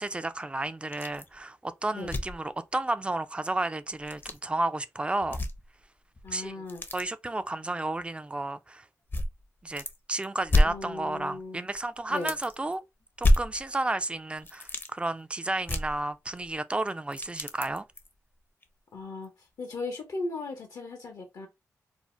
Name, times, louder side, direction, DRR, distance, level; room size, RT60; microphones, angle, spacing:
voice 1, 0.0-5.4 6.3-6.6 6.9-8.8 9.6-12.8 13.2-17.8, right 2 dB, 15° right, 0.3 m, -32 dB
sound 1, 0.9-1.3 1.6-1.7 2.0-2.4 3.9-4.4 5.2-5.8 6.2-7.1 7.9-8.0 9.1-10.0 10.2-11.4 11.7-11.8 12.1-12.7 13.2-14.0 14.4-14.9 15.6-16.6 16.9-18.1 18.6-18.7 19.2-19.3, left 1 dB, 35° left, 0.6 m, -29 dB
voice 2, 6.2-6.8 10.6-11.6 12.1-12.3 18.9-19.3 19.6-21.5, left 3 dB, 75° left, 0.7 m, -37 dB
2.6 x 2.0 x 3.0 m
cardioid pair, 50°, 6 cm